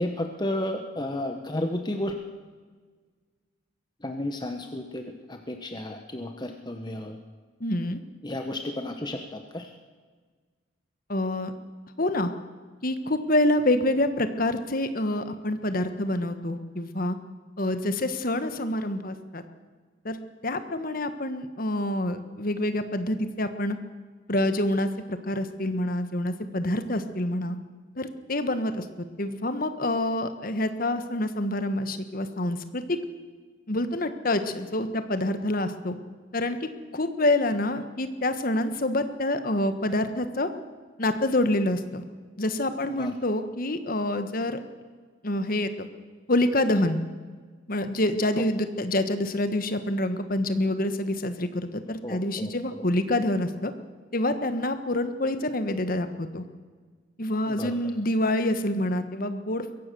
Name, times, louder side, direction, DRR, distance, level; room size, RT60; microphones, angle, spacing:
voice 1, 0.0-2.1 4.0-5.0 5.3-7.2 8.2-9.7 42.9-43.2 48.4-48.5 52.0-52.5 57.5-57.8, left 1 dB, 20° left, 5 dB, 1.2 m, -32 dB
voice 2, 7.6-8.0 11.1-11.5 12.0-12.3 12.8-17.2 17.6-19.4 20.0-23.8 24.3-27.6 28.0-33.0 33.7-35.9 36.3-40.5 41.0-42.0 42.4-44.6 45.2-45.9 46.3-47.0 47.7-53.7 54.1-56.4 57.2-59.7, left 1 dB, 45° left, 9 dB, 1.4 m, -27 dB
22.5 x 16.5 x 6.9 m, 1.5 s
head